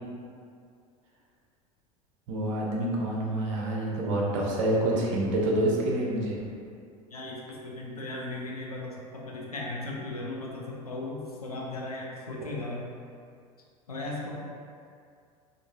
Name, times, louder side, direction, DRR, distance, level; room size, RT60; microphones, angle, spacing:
voice 1, 2.3-6.4, right 1 dB, 55° right, -3 dB, 0.6 m, -27 dB
voice 2, 7.1-12.9 13.9-14.3, left 2 dB, 80° left, -3 dB, 0.5 m, -37 dB
2.9 x 2.5 x 2.5 m, 2.3 s
figure-of-eight pair, 75°, 19 cm